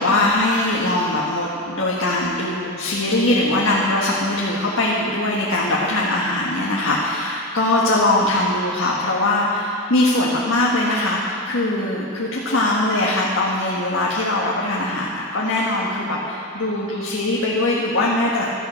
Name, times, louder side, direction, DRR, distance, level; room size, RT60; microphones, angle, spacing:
voice 1, 0.0-18.5, left 2 dB, 80° left, -4 dB, 1.6 m, -21 dB
16.5 x 13.0 x 4.4 m, 2.5 s
head